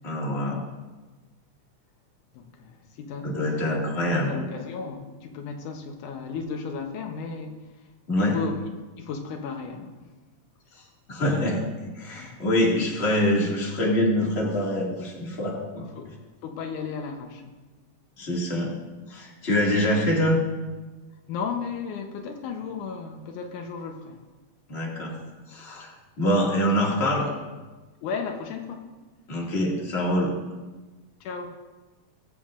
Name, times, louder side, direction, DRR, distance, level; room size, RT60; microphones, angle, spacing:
voice 1, 0.0-0.6 3.2-4.3 8.1-8.4 11.1-15.8 18.2-18.8 19.1-20.4 24.7-25.2 25.5-27.3 29.3-30.4, left 1 dB, 25° left, -3 dB, 2.0 m, -25 dB
voice 2, 2.3-3.3 3.7-7.6 8.2-8.6 9.0-10.1 12.1-12.4 16.0-16.1 16.4-17.5 21.3-24.2 28.0-28.9 31.2-31.5, left 5 dB, 85° left, 4 dB, 2.4 m, -34 dB
22.5 x 7.5 x 2.5 m, 1.2 s
omnidirectional pair, 3.5 m